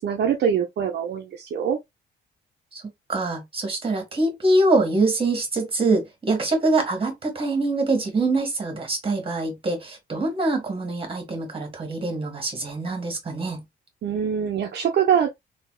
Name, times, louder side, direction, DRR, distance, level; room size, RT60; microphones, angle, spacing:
voice 1, 0.0-1.8 14.0-15.3, right 8 dB, 60° right, 0.7 m, -23 dB
voice 2, 3.1-13.6, right 2 dB, 25° right, 1.7 m, -24 dB
3.4 x 2.8 x 2.2 m
cardioid pair, 90°, 20 cm